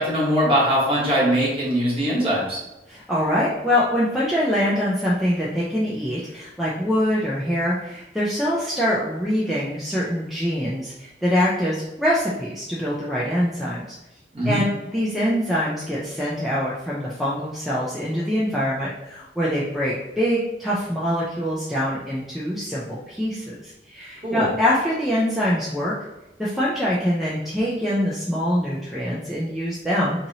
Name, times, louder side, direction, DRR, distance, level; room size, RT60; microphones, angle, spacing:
voice 1, 0.0-2.6 14.3-14.6 24.2-24.5, equal, 30° right, -6 dB, 1.1 m, -21 dB
voice 2, 2.9-13.8 14.5-25.9 26.4-30.3, equal, ahead, -7 dB, 0.3 m, -24 dB
2.8 x 2.7 x 2.7 m, 0.96 s
head